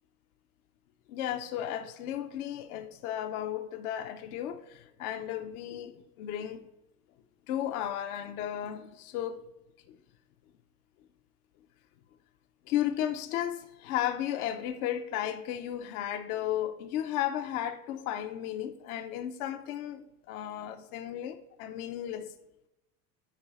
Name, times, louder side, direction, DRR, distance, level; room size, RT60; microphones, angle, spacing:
voice 1, 1.1-6.7 7.5-9.5 9.9-10.0 12.7-22.3, left 11 dB, 70° left, 0.7 m, -34 dB
9.6 x 3.3 x 4.1 m
hypercardioid pair, 95°, 46 cm